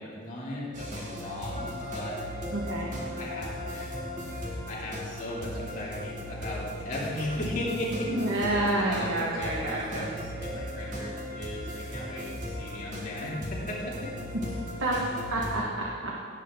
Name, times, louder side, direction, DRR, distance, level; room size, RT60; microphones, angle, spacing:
voice 1, 0.0-2.3 3.2-8.1 8.4-14.0, left 1 dB, 40° left, -5 dB, 2.6 m, -37 dB
sound 1, 0.7-15.6, equal, 40° right, 2.2 m, -37 dB
voice 2, 2.5-2.9 8.1-10.1 14.8-15.0 15.3-16.1, right 1 dB, 90° right, -4 dB, 1.5 m, -29 dB
18.0 x 8.4 x 3.7 m, 2.2 s
head